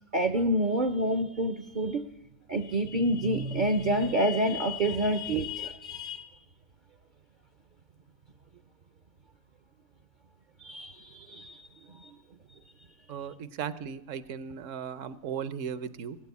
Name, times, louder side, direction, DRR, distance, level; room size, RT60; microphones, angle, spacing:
voice 1, 0.1-2.0 2.5-6.3 10.6-11.7 11.9-12.1, right 1 dB, 50° right, 10 dB, 0.6 m, -28 dB
voice 2, 13.1-16.2, right 7 dB, 65° right, 16 dB, 1.0 m, -36 dB
19.0 x 8.9 x 8.3 m, 0.88 s
omnidirectional pair, 1.4 m